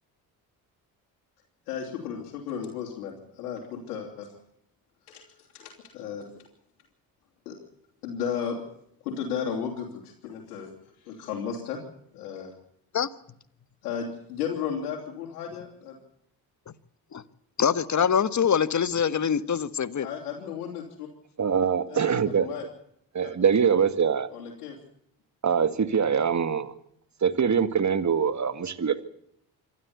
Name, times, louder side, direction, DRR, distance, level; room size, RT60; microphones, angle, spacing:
voice 1, 1.7-4.3 5.1-6.3 7.4-7.6 8.0-8.6 9.0-11.8 12.1-12.5 13.8-16.0 20.0-21.1 21.9-22.6 23.2-23.3 24.3-24.8, left 7 dB, 90° left, -2 dB, 3.3 m, -34 dB
voice 2, 17.6-20.1, left 7 dB, 40° left, 15 dB, 1.4 m, -24 dB
voice 3, 21.4-22.5 23.1-24.3 25.4-26.7 27.2-29.0, right 7 dB, 40° right, 12 dB, 2.1 m, -23 dB
26.5 x 13.0 x 8.4 m, 0.71 s
hypercardioid pair, 55°, 45 cm